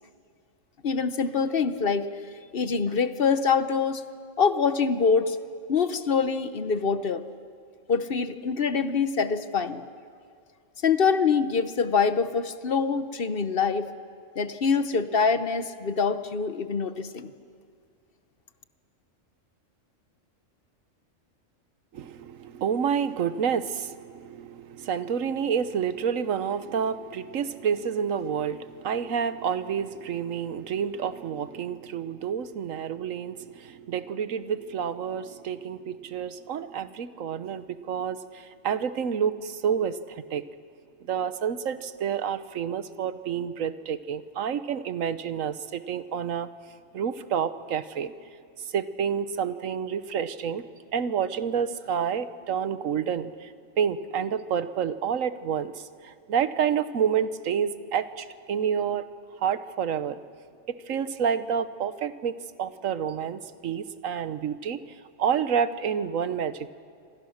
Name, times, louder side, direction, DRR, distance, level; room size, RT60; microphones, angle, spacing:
voice 1, 0.8-2.1 2.5-4.0 4.4-5.4 5.7-7.2 7.9-9.8 10.8-13.9 14.4-17.3, left 5 dB, 50° left, 12 dB, 1.0 m, -25 dB
voice 2, 21.9-40.4 41.0-46.5 46.9-48.1 48.6-50.6 50.9-59.1 59.4-60.2 60.9-62.3 62.6-64.8 65.2-66.7, right 7 dB, 85° right, 12 dB, 1.3 m, -29 dB
27.0 x 26.5 x 6.5 m, 2.2 s
omnidirectional pair, 1.3 m